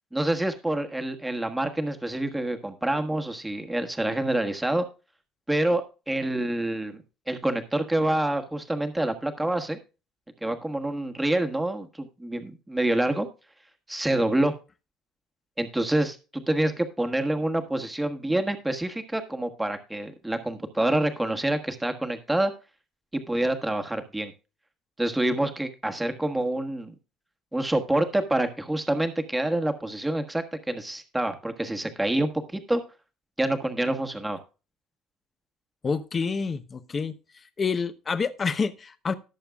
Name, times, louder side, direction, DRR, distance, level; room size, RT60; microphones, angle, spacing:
voice 1, 0.1-4.8 5.5-7.0 7.3-9.8 10.4-13.3 13.9-14.5 15.6-22.5 23.3-24.3 25.0-26.9 27.5-32.8 33.4-34.4, right 1 dB, 5° right, 7 dB, 1.3 m, -27 dB
voice 2, 35.8-37.2 37.6-39.1, left 5 dB, 20° left, 12 dB, 0.8 m, -28 dB
18.5 x 7.0 x 2.4 m, 0.31 s
cardioid pair, 165°, 0 cm